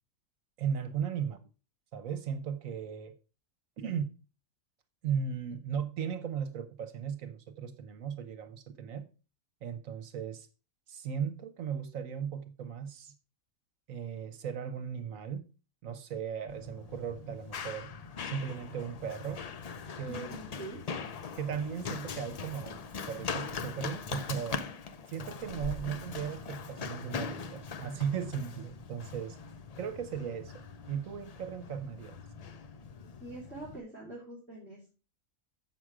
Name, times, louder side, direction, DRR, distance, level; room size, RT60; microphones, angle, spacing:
voice 1, 0.6-1.4 1.9-3.1 3.8-4.1 5.0-9.0 9.6-10.5 10.9-13.1 13.9-15.4 15.8-17.9 18.2-19.4 19.9-20.3 21.3-22.8 23.1-24.6 25.1-29.4 29.8-32.2, right 7 dB, 75° right, 1.3 m, -36 dB
Run, 16.5-33.8, left 5 dB, 90° left, 0.3 m, -41 dB
voice 2, 20.1-20.8 33.2-34.9, right 1 dB, 10° left, 3.3 m, -44 dB
7.7 x 6.2 x 4.7 m
omnidirectional pair, 1.4 m